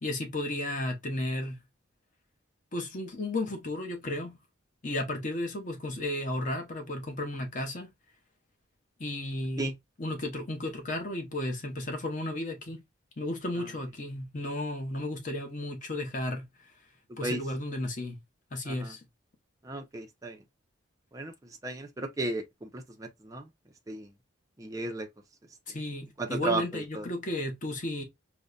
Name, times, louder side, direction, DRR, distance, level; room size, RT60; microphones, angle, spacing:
voice 1, 0.0-1.6 2.7-4.4 4.8-7.9 9.0-12.8 13.2-16.7 17.2-18.2 18.5-19.1 25.7-28.0, left 1 dB, 40° left, 0.8 m, -34 dB
voice 2, 19.6-20.4 21.1-21.3 21.6-23.5 23.9-24.1 24.6-25.1 26.2-27.1, right 2 dB, 15° right, 0.5 m, -34 dB
5.2 x 2.1 x 2.3 m
head